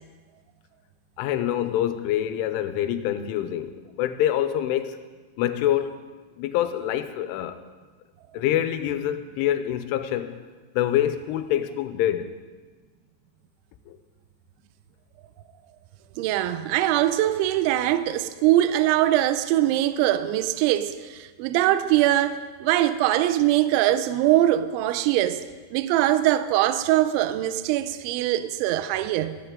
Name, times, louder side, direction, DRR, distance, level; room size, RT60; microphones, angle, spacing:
voice 1, 1.2-5.0 5.4-6.0 6.4-7.6 8.3-10.4 10.7-12.3 13.9-14.0, left 11 dB, 85° left, 3.1 m, -25 dB
voice 2, 16.2-25.4 25.7-29.4, right 13 dB, 80° right, 2.8 m, -22 dB
15.0 x 14.5 x 3.7 m
omnidirectional pair, 5.6 m